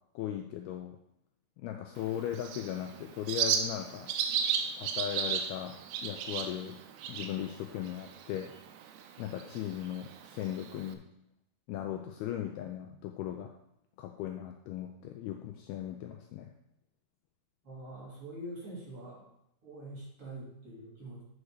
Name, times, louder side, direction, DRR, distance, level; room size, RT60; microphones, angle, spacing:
voice 1, 0.2-1.0 1.6-4.1 4.8-5.8 6.0-6.8 7.1-8.5 9.2-11.0 11.7-13.6 14.0-16.5, left 11 dB, 85° left, 4 dB, 2.3 m, -38 dB
Bird, 2.0-10.9, right 7 dB, 80° right, 2.8 m, -36 dB
voice 2, 17.6-19.3 19.6-21.2, right 1 dB, 35° right, -7 dB, 3.1 m, -44 dB
8.2 x 6.4 x 4.9 m, 0.79 s
omnidirectional pair, 5.0 m